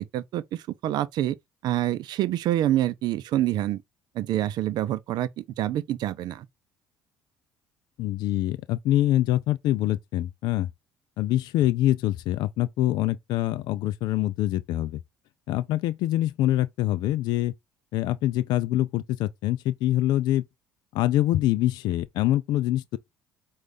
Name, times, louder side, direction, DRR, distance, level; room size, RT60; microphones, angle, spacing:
voice 1, 0.0-1.4 1.6-3.8 4.1-6.5, right 13 dB, 65° right, 0.5 m, -27 dB
voice 2, 8.0-10.7 11.2-15.0 15.5-17.5 17.9-20.4 20.9-23.0, left 14 dB, 65° left, 0.4 m, -25 dB
4.7 x 2.4 x 3.9 m
hypercardioid pair, 70°, 8 cm